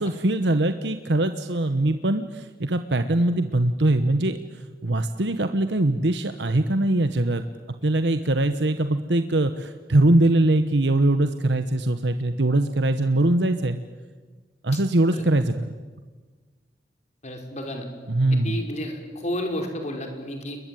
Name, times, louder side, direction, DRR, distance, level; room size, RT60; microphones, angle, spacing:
voice 1, 0.0-4.4 4.8-7.4 7.8-13.8 14.6-15.7 18.1-18.6, right 1 dB, 75° right, 9 dB, 1.1 m, -22 dB
voice 2, 17.2-17.9 18.3-20.6, left 1 dB, 40° left, 4 dB, 5.2 m, -31 dB
29.5 x 22.0 x 9.2 m, 1.4 s
head